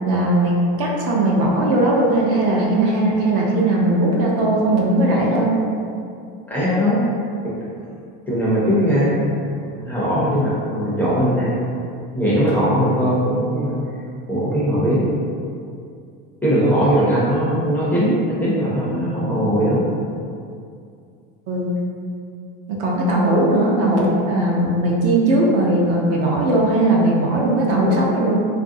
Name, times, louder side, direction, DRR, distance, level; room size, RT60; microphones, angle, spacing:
voice 1, 0.1-5.5 21.5-21.8 22.7-28.5, right 1 dB, 50° right, -3 dB, 0.6 m, -18 dB
voice 2, 6.5-7.1 8.3-9.2 9.8-11.6 12.1-13.8 14.3-15.1 16.4-19.8 23.2-23.4, equal, 5° left, -10 dB, 0.4 m, -19 dB
3.0 x 2.5 x 2.5 m, 2.4 s
cardioid pair, 155°, 30 cm